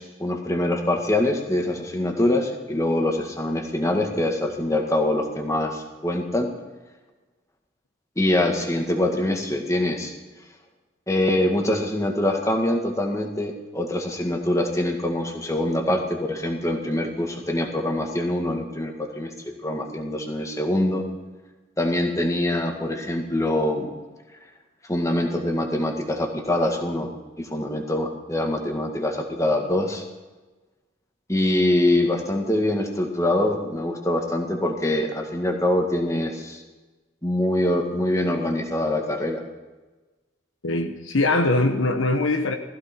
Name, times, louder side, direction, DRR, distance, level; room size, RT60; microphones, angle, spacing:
voice 1, 0.0-6.5 8.2-10.1 11.1-21.0 21.8-23.9 24.9-27.1 27.4-30.0 31.3-36.6 37.2-39.4, left 1 dB, 15° left, 3 dB, 1.9 m, -24 dB
voice 2, 40.6-42.6, left 2 dB, 80° left, 5 dB, 1.3 m, -22 dB
16.5 x 14.5 x 4.5 m, 1.2 s
head